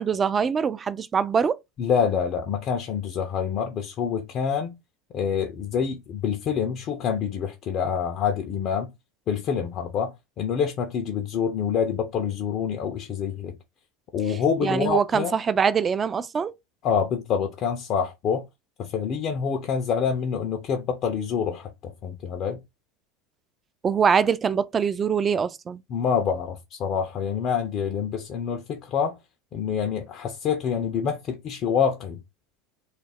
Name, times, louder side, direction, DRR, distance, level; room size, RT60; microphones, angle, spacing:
voice 1, 0.0-1.6 14.6-16.5 23.8-25.8, right 6 dB, 30° right, 0.3 m, -23 dB
voice 2, 1.8-4.7 5.1-8.9 9.3-13.6 14.1-15.4 16.8-18.4 18.8-22.6 25.9-29.2 29.5-32.2, left 7 dB, 45° left, 0.4 m, -26 dB
2.4 x 2.0 x 3.3 m
hypercardioid pair, 95°, 0 cm